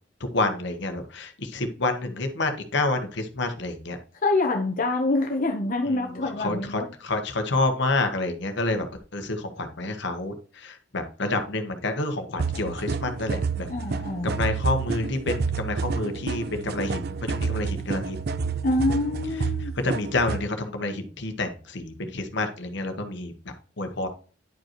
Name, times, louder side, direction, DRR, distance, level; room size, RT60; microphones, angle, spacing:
voice 1, 0.3-4.0 5.8-8.9 9.1-13.7 14.2-18.2 19.6-24.1, left 2 dB, 65° left, 1.1 m, -28 dB
voice 2, 4.2-6.9 13.7-14.3 18.6-19.8, left 2 dB, 45° left, 0.9 m, -25 dB
sound 1, 12.4-20.5, right 4 dB, 55° right, 0.5 m, -29 dB
10.5 x 5.2 x 3.0 m
head